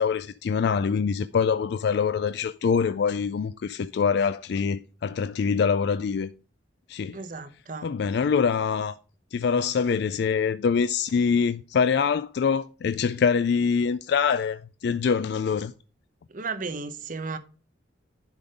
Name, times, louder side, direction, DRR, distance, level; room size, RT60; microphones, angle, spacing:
voice 1, 0.0-6.3 6.9-7.2 7.8-9.0 9.3-15.7, left 6 dB, 60° left, 0.3 m, -24 dB
voice 2, 7.1-7.9 16.3-17.4, right 4 dB, 45° right, 0.8 m, -34 dB
10.5 x 3.8 x 5.0 m
head